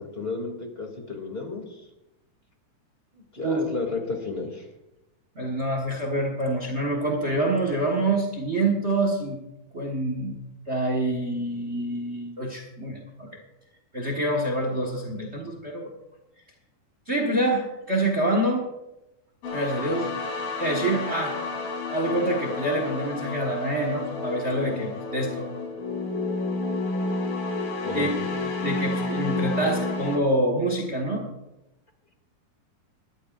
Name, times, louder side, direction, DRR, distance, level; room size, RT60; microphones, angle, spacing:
voice 1, 0.0-1.9 3.1-4.7 27.8-28.1, left 3 dB, 20° left, 2 dB, 2.1 m, -32 dB
voice 2, 5.3-9.4 9.7-10.4 10.7-13.3 13.9-15.9 17.1-18.7 19.5-20.1 20.6-21.4 21.9-25.5 27.9-28.1 28.4-31.2, right 1 dB, 55° right, 2 dB, 0.7 m, -26 dB
sound 1, 19.4-30.2, left 3 dB, 85° left, 4.8 m, -30 dB
20.5 x 13.0 x 2.5 m, 0.93 s
omnidirectional pair, 4.0 m